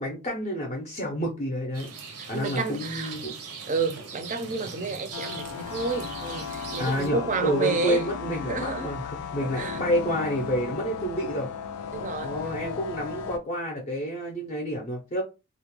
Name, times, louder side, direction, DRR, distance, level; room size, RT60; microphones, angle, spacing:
voice 1, 0.0-1.9 2.3-3.3 6.8-11.5 12.2-15.2, equal, 30° left, 0.5 m, -29 dB
Rain, 1.7-7.1, right 5 dB, 85° right, 0.7 m, -40 dB
voice 2, 2.2-3.1 3.7-8.1 8.5-8.9 9.4-9.8 11.9-12.3, right 3 dB, 35° right, 0.4 m, -30 dB
sound 1, 5.1-13.4, left 6 dB, 85° left, 0.4 m, -35 dB
2.4 x 2.1 x 2.9 m
head